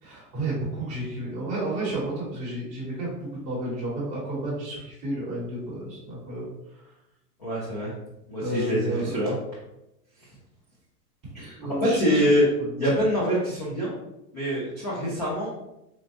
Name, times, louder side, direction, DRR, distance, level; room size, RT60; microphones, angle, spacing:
voice 1, 0.0-6.9 8.3-9.2 11.5-12.2 12.6-12.7, right 1 dB, 15° right, -7 dB, 0.9 m, -32 dB
voice 2, 7.4-7.9 8.3-9.3 11.3-12.5 12.8-13.9 14.3-15.5, equal, 30° left, -8 dB, 0.4 m, -25 dB
4.1 x 2.1 x 2.8 m, 0.90 s
supercardioid pair, 165°, 48 cm